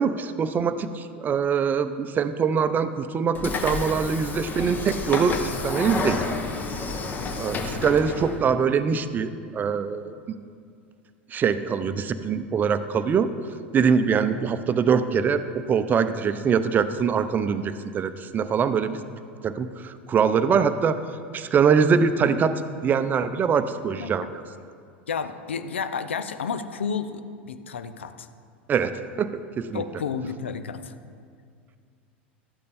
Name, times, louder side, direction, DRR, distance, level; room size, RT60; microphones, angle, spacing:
voice 1, 0.0-6.3 7.4-10.1 11.3-13.3 13.7-19.0 19.4-21.0 21.3-24.4 28.7-29.3 29.6-29.8, right 6 dB, 30° right, 12 dB, 0.6 m, -23 dB
Train / Sliding door, 3.3-8.4, left 4 dB, 30° left, 1.2 m, -30 dB
voice 2, 24.0-24.3 25.1-28.3 29.7-30.9, left 6 dB, 80° left, 10 dB, 0.7 m, -31 dB
12.5 x 8.4 x 4.2 m, 2.2 s
hypercardioid pair, 85°, 6 cm